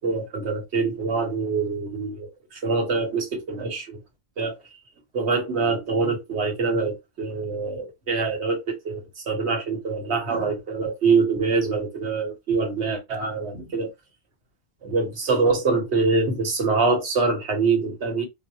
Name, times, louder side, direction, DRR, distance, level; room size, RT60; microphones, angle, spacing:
voice 1, 0.0-4.0 4.4-4.6 5.1-13.9 14.8-18.3, right 4 dB, 85° right, 1.3 m, -24 dB
4.0 x 2.1 x 2.8 m
omnidirectional pair, 1.1 m